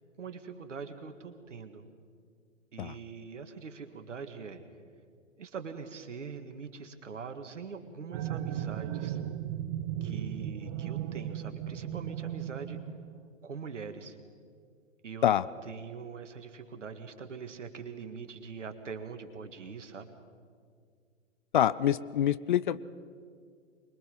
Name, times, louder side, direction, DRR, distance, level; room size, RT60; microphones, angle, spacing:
voice 1, 0.2-1.8 2.7-4.6 5.4-9.2 10.0-12.8 13.4-14.2 15.0-15.3 15.7-20.1, right 5 dB, 70° right, 8 dB, 2.0 m, -43 dB
sound 1, 8.1-13.2, right 11 dB, 20° right, 0.6 m, -36 dB
voice 2, 21.5-22.8, left 10 dB, 40° left, 17 dB, 0.5 m, -26 dB
24.5 x 22.0 x 5.5 m, 2.1 s
figure-of-eight pair, 120°, 38 cm